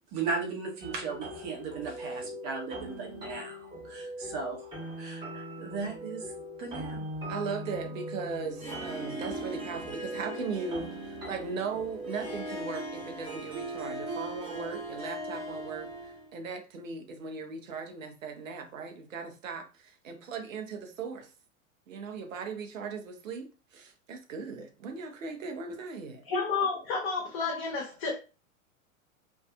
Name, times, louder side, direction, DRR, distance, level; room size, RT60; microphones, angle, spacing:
voice 1, 0.1-4.7 5.0-6.3 6.6-7.1, right 4 dB, 40° right, 1.0 m, -36 dB
sound 1, 0.8-12.6, equal, 10° right, 1.5 m, -41 dB
voice 2, 7.3-21.3 21.9-26.2, right 5 dB, 70° right, 0.8 m, -38 dB
Harp, 8.4-16.3, right 2 dB, 90° right, 1.3 m, -39 dB
voice 3, 26.3-28.2, left 4 dB, 45° left, 0.9 m, -30 dB
2.7 x 2.3 x 2.3 m
figure-of-eight pair, 90°, 41 cm